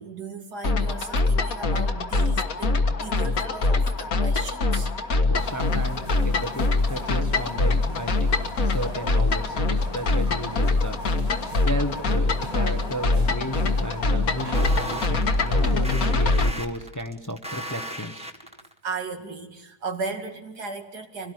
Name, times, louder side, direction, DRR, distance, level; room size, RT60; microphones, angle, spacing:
voice 1, 0.0-4.9 18.8-21.3, right 4 dB, 85° right, 4 dB, 2.8 m, -36 dB
sound 1, 0.6-16.5, left 3 dB, 65° left, 2.0 m, -24 dB
voice 2, 5.3-11.0 11.6-18.3, equal, 15° left, 6 dB, 0.9 m, -34 dB
sound 2, 5.3-16.4, right 3 dB, 25° right, 1.5 m, -40 dB
sound 3, 14.5-18.7, equal, 5° right, 1.7 m, -36 dB
26.0 x 18.0 x 9.4 m, 1.1 s
omnidirectional pair, 1.7 m